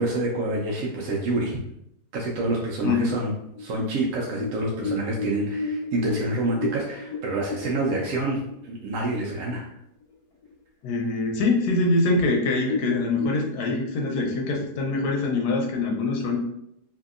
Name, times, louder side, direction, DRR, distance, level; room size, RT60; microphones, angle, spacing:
voice 1, 0.0-1.6 2.1-3.3 3.6-9.7, right 2 dB, 70° right, -2 dB, 0.8 m, -27 dB
sound 1, 3.3-9.2 9.5-9.6 10.0-10.5 10.9-11.0 11.7-11.8 12.1-12.2 12.6-13.8, left 4 dB, 70° left, 1.5 m, -33 dB
voice 2, 10.8-16.4, left 3 dB, 85° left, 1 dB, 1.2 m, -24 dB
2.7 x 2.7 x 2.4 m, 0.77 s
omnidirectional pair, 1.7 m